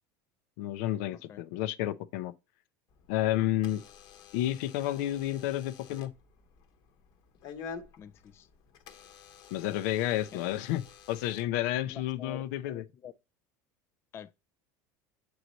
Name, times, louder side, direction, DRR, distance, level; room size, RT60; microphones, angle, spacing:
voice 1, 0.6-2.3 3.1-3.8 4.3-6.1 9.5-10.8 11.1-12.8, left 13 dB, 75° left, 0.6 m, -31 dB
voice 2, 1.1-1.4 8.0-8.5 10.3-10.4 11.9-13.1 14.1-14.3, left 9 dB, 30° left, 0.3 m, -47 dB
Door / Alarm, 2.9-12.1, left 6 dB, 50° left, 1.0 m, -50 dB
7.8 x 3.2 x 3.9 m
supercardioid pair, 130°, 9 cm